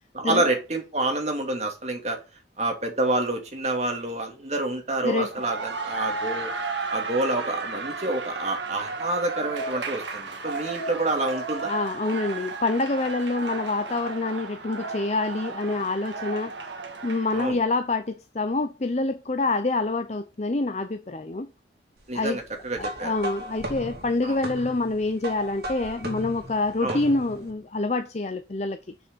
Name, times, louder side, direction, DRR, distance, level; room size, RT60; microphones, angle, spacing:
voice 1, 0.1-2.2 2.6-6.5 6.9-11.7 17.3-17.6 22.1-23.1 24.2-24.4 26.8-27.0, right 2 dB, 40° right, 2.6 m, -28 dB
sound 1, 5.1-17.5, right 4 dB, 85° right, 1.9 m, -33 dB
voice 2, 11.5-16.5 17.0-21.5 22.1-22.4 22.8-28.8, left 2 dB, 40° left, 0.7 m, -26 dB
sound 2, 22.8-27.5, equal, 60° right, 3.0 m, -36 dB
7.2 x 6.4 x 6.8 m
head